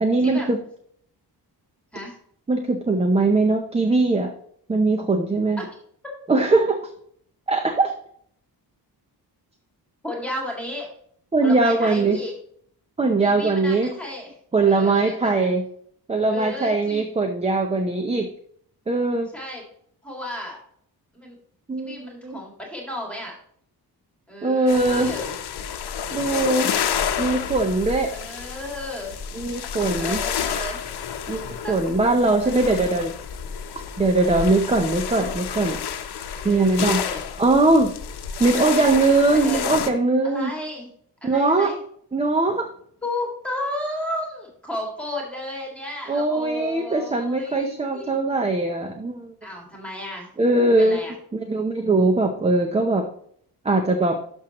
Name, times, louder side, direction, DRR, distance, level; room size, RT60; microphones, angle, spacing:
voice 1, 0.0-0.6 2.5-4.3 4.7-5.6 6.3-6.8 7.5-7.9 11.3-12.2 13.0-13.9 14.5-15.6 16.1-18.3 18.9-19.3 21.7-22.4 24.4-25.1 26.1-26.7 27.2-28.1 29.3-30.2 31.3-33.1 34.0-35.8 36.4-37.0 37.4-37.9 38.4-40.5 41.2-41.7 42.1-42.7 46.1-49.3 50.4-51.0 51.3-53.1 53.6-54.2, right 2 dB, 15° right, 4 dB, 0.6 m, -21 dB
voice 2, 10.0-10.9 11.4-12.3 13.2-14.3 14.6-15.5 16.3-17.0 19.3-19.7 20.0-20.6 21.1-21.4 21.8-23.3 24.3-25.3 28.1-29.1 30.0-30.8 31.6-31.9 36.3-37.2 39.2-39.7 40.2-40.9 41.2-41.8 43.0-48.1 49.4-50.3 50.6-51.1, left 1 dB, 5° left, -1 dB, 2.1 m, -33 dB
sound 1, 24.7-39.9, left 8 dB, 80° left, 0.9 m, -30 dB
11.5 x 6.3 x 3.0 m, 0.63 s
wide cardioid pair, 180°, 39 cm